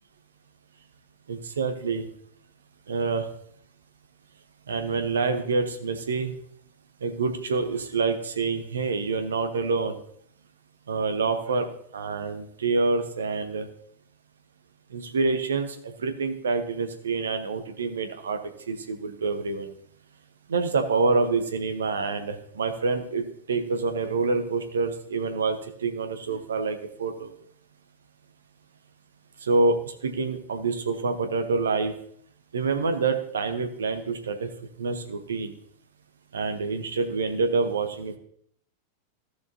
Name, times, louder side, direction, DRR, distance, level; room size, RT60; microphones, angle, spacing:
voice 1, 1.3-2.1 2.9-3.3 4.7-6.3 7.0-10.0 10.9-13.7 14.9-18.4 18.7-19.7 20.5-27.3 29.4-31.9 32.5-34.5 34.8-35.5 36.3-38.2, right 4 dB, 70° right, 8 dB, 1.0 m, -27 dB
14.5 x 6.5 x 2.8 m, 0.65 s
figure-of-eight pair, 90°, 0 cm